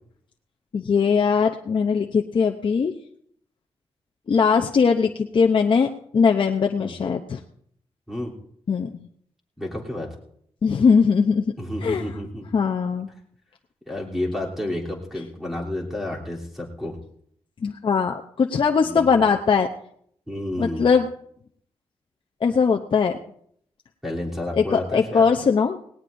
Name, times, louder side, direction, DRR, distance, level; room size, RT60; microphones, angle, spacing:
voice 1, 0.7-3.0 4.3-7.4 8.7-8.9 10.6-11.5 11.8-12.0 12.5-13.1 17.6-19.7 20.6-21.1 22.4-23.2 24.5-25.8, left 5 dB, 50° left, 2 dB, 0.7 m, -20 dB
voice 2, 9.6-10.1 11.6-12.5 13.9-17.0 18.8-19.2 20.3-20.9 24.0-25.3, left 1 dB, 5° right, -3 dB, 3.2 m, -30 dB
18.5 x 18.0 x 2.6 m, 0.67 s
wide cardioid pair, 100°, 11 cm